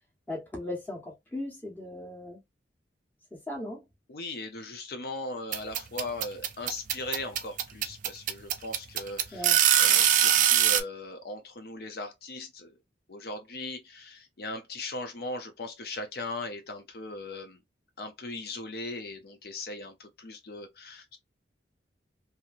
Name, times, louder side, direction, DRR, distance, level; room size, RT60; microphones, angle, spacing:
voice 1, 0.3-2.4 3.5-3.8 9.3-9.6, left 1 dB, 10° left, 1.0 m, -37 dB
voice 2, 4.1-12.7 13.1-17.6 18.0-21.2, left 2 dB, 55° left, 0.5 m, -39 dB
sound 1, 5.5-10.8, right 10 dB, 45° right, 0.4 m, -22 dB
3.0 x 2.7 x 2.4 m
head